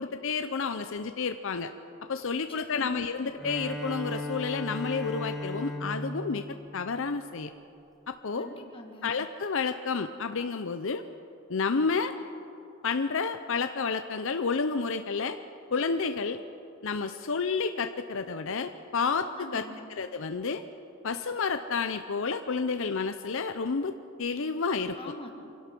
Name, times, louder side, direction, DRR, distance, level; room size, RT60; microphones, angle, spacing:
voice 1, 0.0-1.7 2.1-6.4 6.7-7.5 8.1-8.5 9.0-11.0 11.5-12.1 12.8-15.4 15.7-16.4 16.8-19.6 20.0-20.6 21.0-23.9 24.2-25.0, left 5 dB, 60° left, 9 dB, 0.6 m, -30 dB
voice 2, 2.3-3.0 8.3-9.1 19.4-19.8 25.0-25.3, left 1 dB, 25° left, 3 dB, 2.0 m, -43 dB
Bowed string instrument, 3.3-7.7, left 1 dB, ahead, 1.6 m, -37 dB
25.0 x 17.0 x 6.1 m, 2.9 s
head